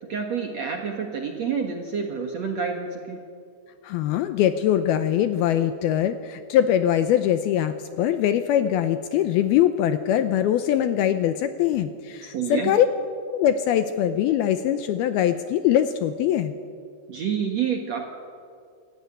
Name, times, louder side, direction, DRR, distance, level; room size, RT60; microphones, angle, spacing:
voice 1, 0.0-3.2 12.2-12.8 17.1-18.0, right 6 dB, 60° right, 3 dB, 1.9 m, -28 dB
voice 2, 3.8-12.9 13.3-16.5, left 10 dB, 80° left, 10 dB, 2.4 m, -22 dB
27.0 x 15.0 x 9.7 m, 2.3 s
omnidirectional pair, 5.1 m